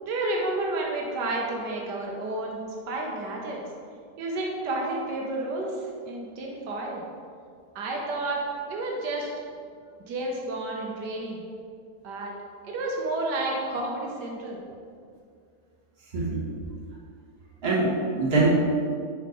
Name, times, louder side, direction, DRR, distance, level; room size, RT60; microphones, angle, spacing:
voice 1, 0.0-2.6 2.9-3.6 4.2-5.8 6.1-7.0 7.7-8.4 8.7-9.3 10.1-11.4 12.0-12.3 12.6-14.6, right 2 dB, 80° right, -1 dB, 1.4 m, -30 dB
voice 2, 16.1-16.5 17.6-18.5, right 2 dB, 40° right, -6 dB, 1.5 m, -23 dB
5.5 x 4.2 x 4.7 m, 2.2 s
omnidirectional pair, 1.8 m